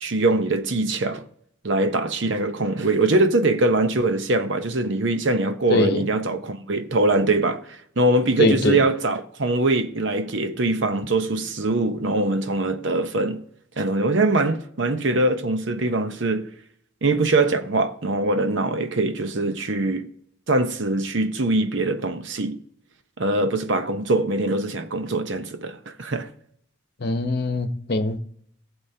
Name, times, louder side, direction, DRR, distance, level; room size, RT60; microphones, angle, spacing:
voice 1, 0.0-1.2 1.6-13.4 13.8-16.5 17.0-20.1 20.5-22.6 23.2-26.3, right 2 dB, 65° right, 0.8 m, -22 dB
voice 2, 5.7-6.1 8.4-8.8 27.0-28.2, left 2 dB, 55° left, 0.9 m, -22 dB
18.5 x 7.2 x 2.8 m
head